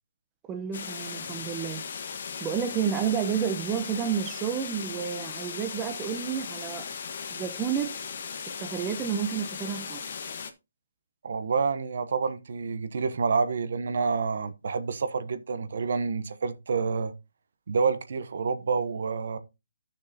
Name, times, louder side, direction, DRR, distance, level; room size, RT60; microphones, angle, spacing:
voice 1, 0.5-1.8 2.4-6.9 7.3-7.9 8.5-10.0, right 8 dB, 15° right, 0.8 m, -30 dB
sound 1, 0.7-10.5, left 6 dB, 55° left, 1.3 m, -37 dB
voice 2, 11.2-17.1 17.7-19.4, right 5 dB, 65° right, 0.9 m, -28 dB
12.0 x 6.5 x 2.8 m
hypercardioid pair, 165°, 0 cm